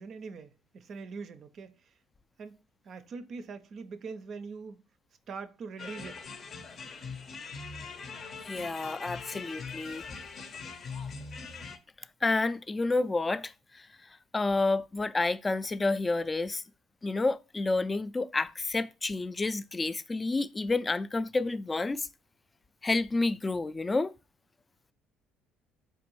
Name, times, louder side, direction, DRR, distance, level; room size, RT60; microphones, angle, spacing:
voice 1, 0.0-1.9 2.4-4.8 5.3-6.3, right 4 dB, 55° right, 0.4 m, -43 dB
sound 1, 5.8-11.8, left 5 dB, 50° left, 0.7 m, -42 dB
voice 2, 8.4-10.0 12.2-16.6 17.0-22.1 22.8-24.1, left 3 dB, 25° left, 0.3 m, -30 dB
4.4 x 2.5 x 3.0 m
hypercardioid pair, 60°, 0 cm